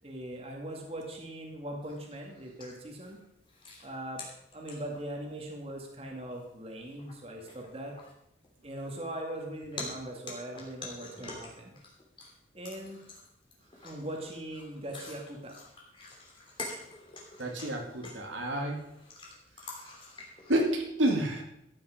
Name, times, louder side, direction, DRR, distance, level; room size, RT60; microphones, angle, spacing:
voice 1, 0.0-3.2 3.8-4.2 4.5-8.0 8.6-11.8 12.5-13.0 13.8-15.5, right 1 dB, 30° right, 0 dB, 2.4 m, -40 dB
sound 1, 1.8-5.2 5.8-5.9 6.3-6.4 6.8-7.2 7.5-9.4 9.7-12.3 12.6-20.8, left 2 dB, 30° left, 3.1 m, -46 dB
voice 2, 17.4-18.8 20.5-21.4, right 1 dB, 90° right, 1 dB, 2.4 m, -29 dB
14.0 x 9.3 x 5.1 m, 0.79 s
head